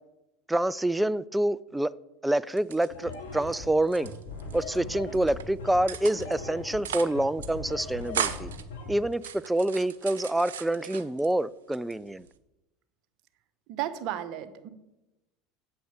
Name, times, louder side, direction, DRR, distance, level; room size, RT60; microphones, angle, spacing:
voice 1, 0.5-1.9 2.2-4.1 4.5-8.5 8.9-12.3, right 1 dB, 5° right, 0.4 m, -27 dB
sound 1, 2.5-3.6 3.8-4.8 5.1-5.4 5.9-6.4 6.7-7.2 7.4-7.5 7.8-8.6 9.1-11.3 11.7-12.4, right 9 dB, 85° right, 0.8 m, -36 dB
sound 2, 2.9-8.9, left 3 dB, 85° left, 2.9 m, -40 dB
voice 2, 13.7-14.7, right 12 dB, 60° right, 1.2 m, -33 dB
8.7 x 7.7 x 7.2 m
hypercardioid pair, 90°, 0 cm